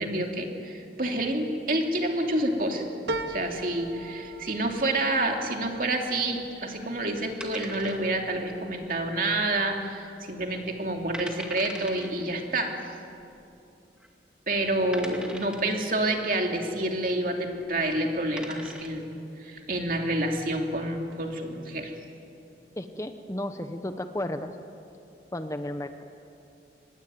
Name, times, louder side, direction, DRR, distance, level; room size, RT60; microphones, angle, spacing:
voice 1, 0.0-2.9 3.3-12.7 14.5-19.1 19.4-21.9, right 1 dB, 50° right, 2 dB, 2.8 m, -28 dB
sound 1, 3.1-7.8 8.3-9.0 9.4-9.5, right 2 dB, 85° right, 1.5 m, -39 dB
sound 2, 7.4-8.4 8.6-8.7 9.3-9.8 10.1-10.2 10.8-10.9 11.1-12.1 13.2-13.3 14.0-14.1 14.9-15.8 17.6-17.8 18.2-19.0, right 1 dB, 5° right, 2.1 m, -41 dB
voice 2, 22.8-24.5 25.3-26.0, left 1 dB, 15° left, 8 dB, 0.8 m, -33 dB
24.0 x 20.5 x 9.4 m, 2.6 s
head